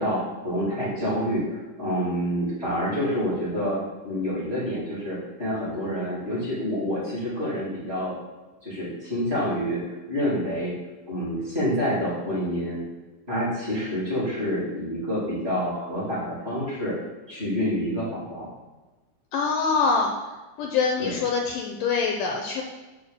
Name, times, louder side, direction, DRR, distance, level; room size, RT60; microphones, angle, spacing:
voice 1, 0.0-8.1 8.6-10.7 11.1-12.8 13.3-16.9 17.3-18.5 21.0-21.2, equal, 20° right, -8 dB, 2.4 m, -28 dB
voice 2, 19.3-20.1 20.6-22.6, left 5 dB, 75° left, 2 dB, 2.1 m, -24 dB
8.0 x 4.0 x 6.9 m, 1.2 s
omnidirectional pair, 4.3 m